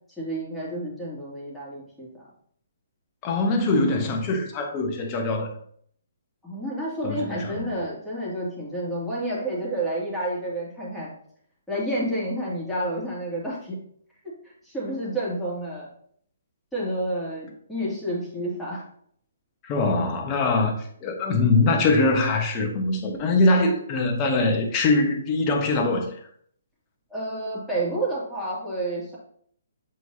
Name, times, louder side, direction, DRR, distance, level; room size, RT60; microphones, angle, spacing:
voice 1, 0.2-2.2 6.4-11.1 11.7-13.8 14.2-14.3 14.6-15.9 16.7-18.8 27.1-29.2, right 1 dB, ahead, -8 dB, 2.4 m, -30 dB
voice 2, 3.2-5.5 7.0-7.8 19.6-26.2, left 2 dB, 25° left, 3 dB, 1.2 m, -23 dB
7.6 x 4.5 x 2.8 m, 0.62 s
hypercardioid pair, 140°, 0 cm